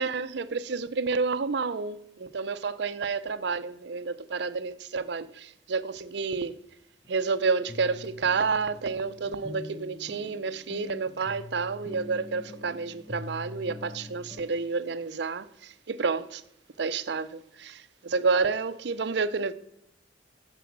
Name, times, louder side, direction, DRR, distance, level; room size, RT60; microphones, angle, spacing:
voice 1, 0.0-6.6 7.1-16.4 16.8-19.5, right 4 dB, 60° right, 0.5 m, -30 dB
sound 1, 5.9-6.0 6.5-6.6 7.0-7.1 7.7-14.5, left 2 dB, 20° left, 0.7 m, -44 dB
7.1 x 6.9 x 6.0 m
head